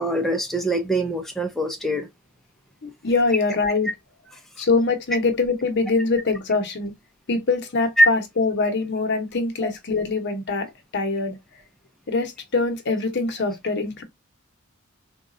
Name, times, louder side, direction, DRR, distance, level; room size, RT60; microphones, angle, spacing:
voice 1, 0.0-2.1 8.0-8.1 9.6-9.7, right 1 dB, ahead, 0.4 m, -22 dB
voice 2, 2.8-3.9 4.6-7.0 7.3-11.6 12.1-14.0, left 3 dB, 55° left, 0.8 m, -23 dB
3.9 x 2.3 x 2.4 m
head